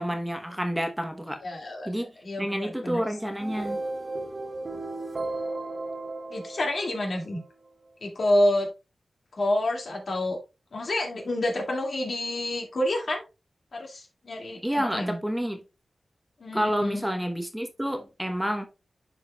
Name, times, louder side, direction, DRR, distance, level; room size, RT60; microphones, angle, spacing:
voice 1, 0.0-1.4 1.9-2.1 2.4-3.8 14.6-15.6 16.5-18.7, equal, 5° right, 1.0 m, -29 dB
voice 2, 1.4-1.9 2.2-3.0 6.3-7.4 8.0-8.7 9.4-10.4 10.7-13.2 13.7-15.2 16.4-17.1, left 1 dB, 60° left, 2.2 m, -28 dB
sound 1, 3.2-7.5, right 2 dB, 50° right, 1.2 m, -35 dB
11.0 x 4.5 x 2.3 m
wide cardioid pair, 95°, 0 cm